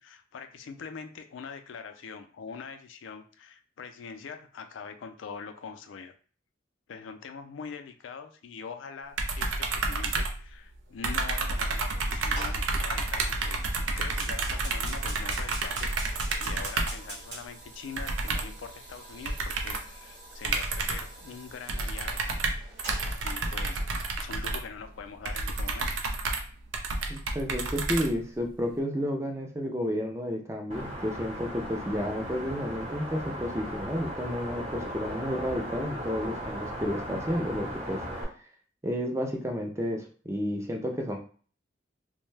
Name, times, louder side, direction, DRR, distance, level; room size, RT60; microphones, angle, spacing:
voice 1, 0.0-6.1 6.9-22.3 23.2-25.9, left 6 dB, 90° left, 8 dB, 0.4 m, -43 dB
sound 1, 9.2-10.8 11.0-17.1 18.0-18.6 19.3-19.9 20.4-21.2 21.7-28.5, right 3 dB, 90° right, 0.5 m, -30 dB
Fire, 12.3-24.0, right 2 dB, 65° right, 0.9 m, -45 dB
voice 2, 27.1-38.0 38.8-41.2, equal, 15° right, 2 dB, 0.4 m, -31 dB
sound 2, 30.7-38.2, equal, 30° right, 0.9 m, -37 dB
2.6 x 2.2 x 3.2 m, 0.42 s
head